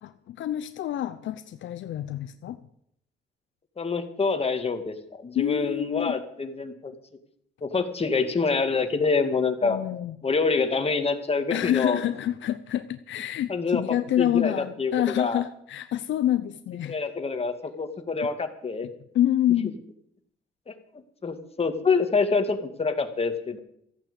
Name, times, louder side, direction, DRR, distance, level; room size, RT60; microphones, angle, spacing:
voice 1, 0.0-2.6 5.4-6.2 9.6-10.1 11.5-17.0 19.1-19.8, left 12 dB, 70° left, 10 dB, 0.7 m, -27 dB
voice 2, 3.8-6.9 7.6-9.8 10.2-12.0 13.5-15.4 16.9-18.9 20.7-20.8 21.2-23.6, left 4 dB, 30° left, 6 dB, 2.0 m, -26 dB
14.5 x 8.8 x 8.3 m, 0.72 s
cardioid pair, 90°, 20 cm